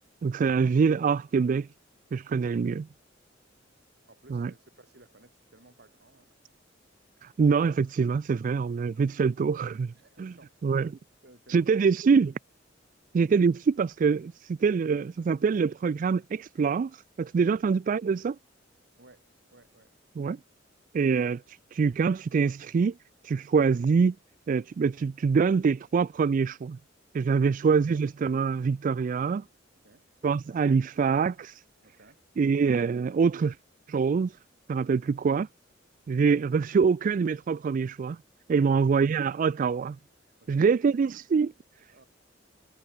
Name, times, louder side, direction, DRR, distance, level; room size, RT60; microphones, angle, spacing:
voice 1, 0.2-1.7 2.1-2.9 4.3-4.5 7.2-9.9 10.2-10.3 10.6-10.9 11.5-12.3 13.1-18.4 20.2-20.4 20.9-22.9 23.2-24.1 24.5-26.8 27.1-29.4 30.2-31.6 32.4-33.6 33.9-34.4 34.7-35.5 36.1-38.2 38.5-40.0 40.5-41.5, right 5 dB, 45° right, 0.3 m, -25 dB
voice 2, 4.1-6.3 9.9-10.6 11.2-11.6 17.4-17.5 19.0-19.9 29.8-30.0 31.8-32.2 38.5-38.7 40.4-40.7 41.9-42.1, right 2 dB, 60° right, 5.8 m, -57 dB
head